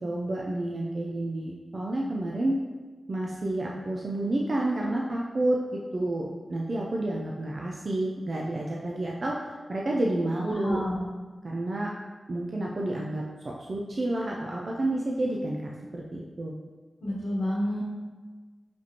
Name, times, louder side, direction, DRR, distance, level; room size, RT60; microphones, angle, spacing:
voice 1, 0.0-2.6 3.1-9.4 9.7-10.8 11.4-11.9 12.3-13.2 13.6-16.5, right 1 dB, 60° right, -2 dB, 0.4 m, -30 dB
voice 2, 10.5-10.9 17.0-17.8, equal, 85° left, -7 dB, 0.8 m, -29 dB
5.9 x 2.5 x 2.9 m, 1.3 s
cardioid pair, 45°, 0 cm